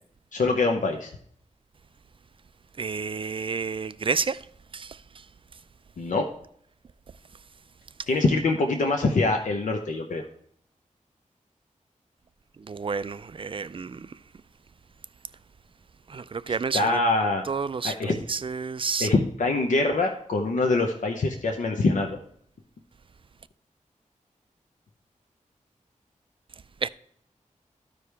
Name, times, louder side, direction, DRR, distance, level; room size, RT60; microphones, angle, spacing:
voice 1, 0.3-1.1 6.0-6.3 8.1-10.2 16.7-17.4 17.8-18.2 19.0-22.2, left 3 dB, 75° left, 0.8 m, -24 dB
voice 2, 2.8-4.4 4.7-5.0 12.7-14.1 16.1-17.0 17.5-19.1 26.8-26.9, right 5 dB, 40° right, 0.3 m, -30 dB
13.5 x 4.8 x 3.4 m
wide cardioid pair, 100°, 13 cm